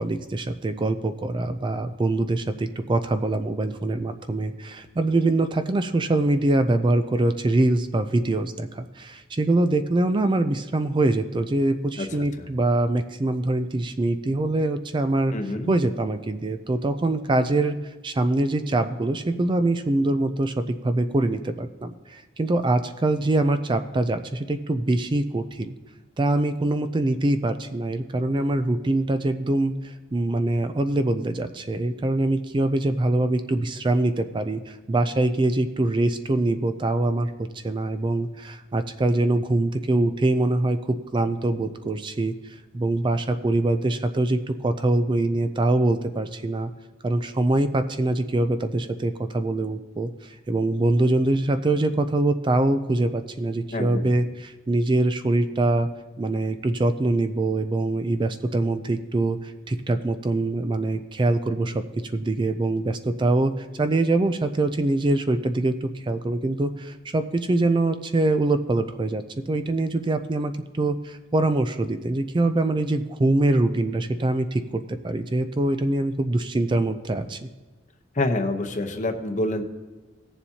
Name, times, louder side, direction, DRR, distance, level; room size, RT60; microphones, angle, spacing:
voice 1, 0.0-15.3 15.7-17.8 18.0-25.8 26.2-46.7 47.0-55.9 56.2-61.8 62.1-77.4, right 2 dB, 25° right, 9 dB, 0.4 m, -24 dB
voice 2, 15.3-15.7 53.7-54.1 78.2-79.6, left 2 dB, 40° left, 7 dB, 0.8 m, -27 dB
18.0 x 7.1 x 2.8 m, 1.2 s
head